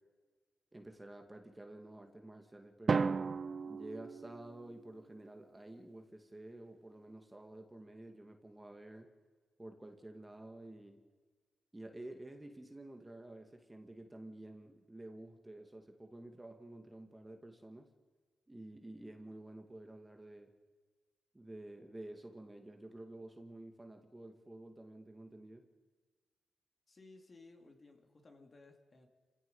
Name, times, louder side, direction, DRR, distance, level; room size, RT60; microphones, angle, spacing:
voice 1, 0.7-3.2 3.7-9.1 9.6-11.0 11.7-17.9 18.5-20.5 21.3-25.6, right 1 dB, 15° right, 4 dB, 2.2 m, -51 dB
Drum, 2.9-4.9, right 5 dB, 40° right, 0.5 m, -35 dB
voice 2, 26.9-29.1, left 3 dB, 35° left, 3 dB, 2.9 m, -59 dB
29.5 x 17.0 x 5.6 m, 1.4 s
cardioid pair, 105°, 0 cm